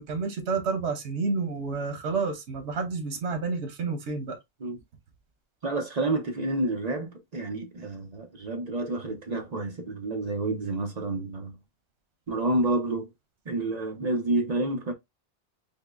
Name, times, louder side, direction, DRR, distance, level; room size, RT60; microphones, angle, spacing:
voice 1, 0.0-4.4, right 4 dB, 85° right, 1.2 m, -30 dB
voice 2, 5.6-11.5 12.3-13.1 13.5-14.9, right 2 dB, 40° right, 0.8 m, -29 dB
5.4 x 2.1 x 2.4 m
omnidirectional pair, 1.1 m